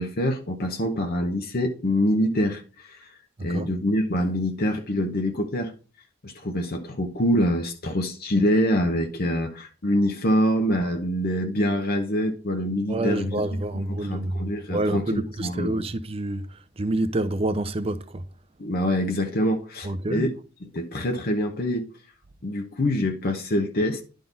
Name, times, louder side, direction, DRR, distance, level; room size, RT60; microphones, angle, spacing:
voice 1, 0.0-3.1 3.4-5.7 6.2-13.4 13.9-15.7 18.6-20.3 20.6-21.9 22.4-24.0, equal, 50° left, 0.9 m, -25 dB
voice 2, 12.9-18.2 19.8-20.2, right 1 dB, 30° right, 0.5 m, -28 dB
10.5 x 3.8 x 3.9 m
head